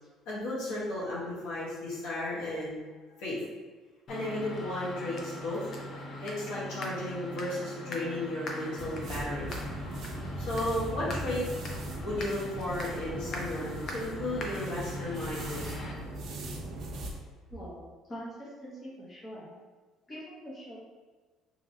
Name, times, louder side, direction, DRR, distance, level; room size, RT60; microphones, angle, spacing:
voice 1, 0.3-2.8 3.2-3.4 4.1-5.7 6.2-9.5 10.4-11.4 12.0-15.6, left 1 dB, 80° left, -7 dB, 1.1 m, -34 dB
sound 1, 4.1-15.9, left 1 dB, 45° left, 0.5 m, -41 dB
sound 2, 8.8-17.2, right 1 dB, 55° right, 0.5 m, -39 dB
voice 2, 17.5-17.8 18.1-19.5 20.1-20.8, equal, 20° left, -7 dB, 0.8 m, -43 dB
2.9 x 2.8 x 2.6 m, 1.3 s
cardioid pair, 140°, 0 cm